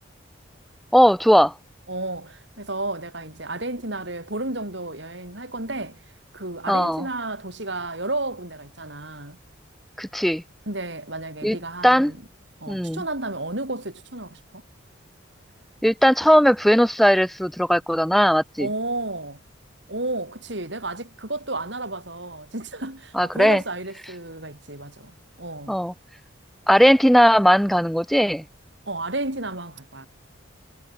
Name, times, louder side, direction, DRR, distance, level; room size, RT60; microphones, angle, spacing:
voice 1, 0.9-1.5 6.7-7.1 10.0-10.4 11.4-11.6 11.8-12.1 12.7-13.0 15.8-18.7 23.1-23.6 25.7-25.9 26.7-28.4, equal, ahead, 0.6 m, -18 dB
voice 2, 1.9-6.0 6.3-9.4 10.7-12.2 12.6-14.6 18.6-19.4 19.9-25.1 25.4-25.8 28.9-30.1, right 2 dB, 60° right, 4.7 m, -32 dB
head